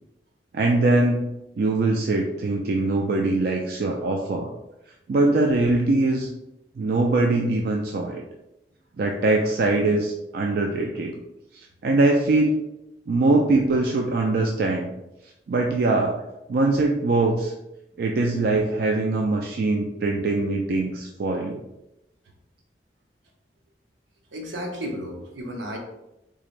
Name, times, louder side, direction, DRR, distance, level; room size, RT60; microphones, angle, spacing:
voice 1, 0.5-1.3 1.6-4.5 5.1-6.3 6.8-8.2 9.0-11.2 11.8-12.6 13.1-14.9 15.5-16.2 16.5-17.5 18.0-21.6, right 2 dB, 55° right, 1 dB, 0.3 m, -22 dB
voice 2, 24.3-25.8, equal, 85° right, 1 dB, 0.8 m, -33 dB
3.6 x 3.1 x 2.5 m, 0.90 s
head